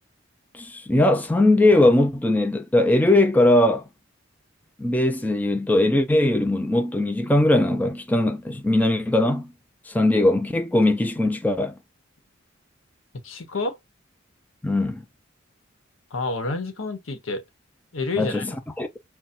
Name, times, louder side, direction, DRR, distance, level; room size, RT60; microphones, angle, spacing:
voice 1, 0.5-3.9 4.8-9.5 9.9-11.8 14.6-15.0 18.2-18.5 18.8-18.9, left 1 dB, 10° left, 0.4 m, -20 dB
voice 2, 13.2-13.8 16.1-17.4 17.9-18.6, left 3 dB, 80° left, 1.0 m, -29 dB
5.6 x 2.2 x 2.5 m
head